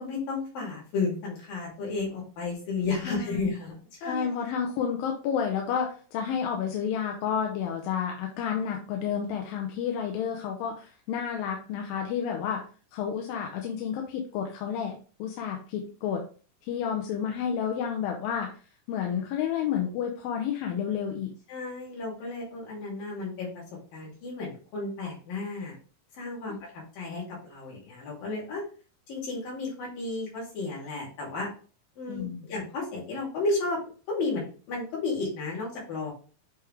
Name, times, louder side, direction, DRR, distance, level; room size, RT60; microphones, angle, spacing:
voice 1, 0.0-4.3 21.5-23.6 23.9-25.8 26.1-28.6 29.1-31.5 32.0-33.8 34.1-36.1, left 3 dB, 75° left, -4 dB, 4.4 m, -33 dB
voice 2, 3.1-3.5 4.0-12.6 12.9-16.2 16.6-18.5 18.9-21.3 26.5-26.6 32.1-32.5, left 8 dB, 90° left, 2 dB, 2.6 m, -30 dB
8.1 x 3.6 x 3.3 m, 0.37 s
omnidirectional pair, 4.0 m